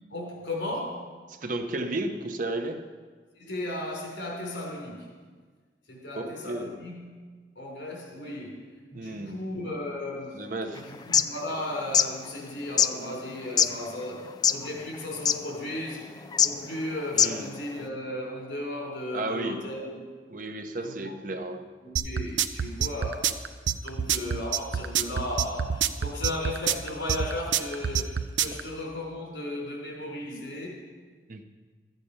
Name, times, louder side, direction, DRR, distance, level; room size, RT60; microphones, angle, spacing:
voice 1, 0.1-1.2 3.4-5.1 5.9-7.1 7.6-8.6 8.9-16.2 16.4-20.0 20.8-21.2 21.8-23.4 23.8-30.8, left 1 dB, 85° left, -1 dB, 3.8 m, -35 dB
voice 2, 1.3-2.9 6.1-6.8 8.9-9.5 10.3-10.9 17.2-17.5 19.1-19.7 20.3-21.7 31.3-31.4, right 2 dB, 50° right, 6 dB, 0.8 m, -33 dB
sound 1, 10.9-11.2 11.8-12.1 12.8-12.9 13.6-13.7 14.3-14.7 14.9-15.0 15.2-15.4 16.3-16.5 17.1-17.4, left 7 dB, 20° left, 0.3 m, -21 dB
sound 2, 22.0-28.6, right 9 dB, 85° right, 0.5 m, -26 dB
14.0 x 8.3 x 5.6 m, 1.5 s
head